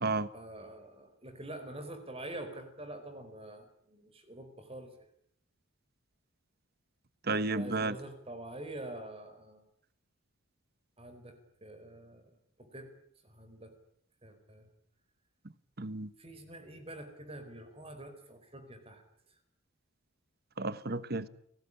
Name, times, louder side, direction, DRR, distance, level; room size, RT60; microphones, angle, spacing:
voice 1, 0.3-5.1 7.6-9.6 11.0-12.3 12.6-12.9 13.2-13.7 14.2-14.7 16.2-19.0, right 1 dB, 25° right, 4.6 m, -46 dB
voice 2, 7.3-7.9 15.8-16.1 20.6-21.3, right 3 dB, 45° right, 1.3 m, -32 dB
30.0 x 19.5 x 10.0 m
head